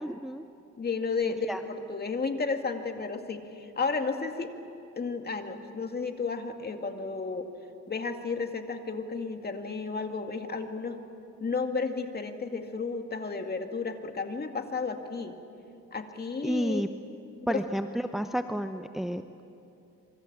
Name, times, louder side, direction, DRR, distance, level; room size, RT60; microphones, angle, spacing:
voice 1, 0.0-0.4 1.5-1.6 16.4-16.9 17.5-19.4, equal, ahead, 8 dB, 0.8 m, -31 dB
voice 2, 0.8-4.5 5.0-7.5 7.9-11.0 11.4-15.3 15.9-16.8 17.5-17.6, left 4 dB, 30° left, 5 dB, 2.2 m, -32 dB
27.0 x 24.0 x 7.4 m, 2.7 s
cardioid pair, 90°, 30 cm